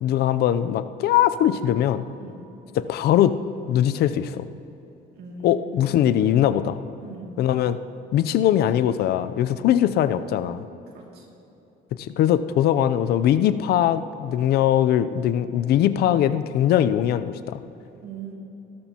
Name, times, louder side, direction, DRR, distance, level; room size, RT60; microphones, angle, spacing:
voice 1, 0.0-2.0 2.8-3.3 3.7-4.5 5.4-6.8 7.4-7.8 8.1-10.6 12.0-17.6, left 11 dB, 70° left, 13 dB, 0.6 m, -21 dB
voice 2, 5.2-6.0 7.0-7.3 9.4-9.7 10.9-11.3 18.0-18.4, right 5 dB, 70° right, -1 dB, 2.5 m, -40 dB
18.0 x 13.0 x 2.9 m, 3.0 s
cardioid pair, 110°, 17 cm